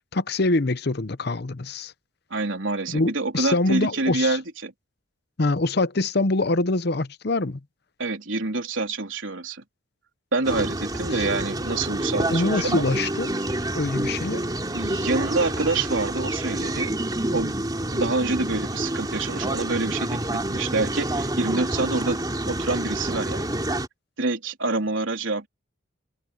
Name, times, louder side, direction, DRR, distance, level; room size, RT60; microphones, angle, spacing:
voice 1, 0.1-1.9 2.9-4.4 5.4-7.6 12.3-13.3 13.7-14.4, left 2 dB, 55° left, 0.8 m, -24 dB
voice 2, 2.3-4.7 8.0-9.6 10.3-12.8 14.7-16.9 17.3-17.6 17.9-23.5 24.2-25.5, right 3 dB, 75° right, 3.7 m, -27 dB
sound 1, 10.4-23.9, right 1 dB, 20° right, 3.5 m, -28 dB
head